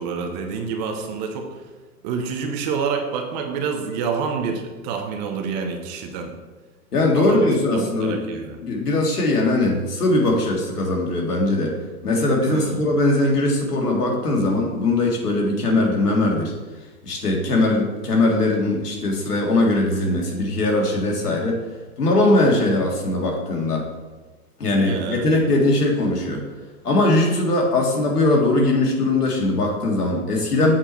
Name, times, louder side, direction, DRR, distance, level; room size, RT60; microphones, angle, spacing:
voice 1, 0.0-1.5 2.0-6.3 7.1-8.6 12.4-12.8 24.8-25.3, right 5 dB, 30° right, 4 dB, 0.8 m, -28 dB
voice 2, 6.9-8.3 8.6-11.7 12.0-16.5 17.0-21.6 22.0-23.8 24.6-26.4 26.8-30.7, left 2 dB, 90° left, 0 dB, 2.0 m, -20 dB
7.4 x 4.4 x 4.4 m, 1.2 s
hypercardioid pair, 135°, 45 cm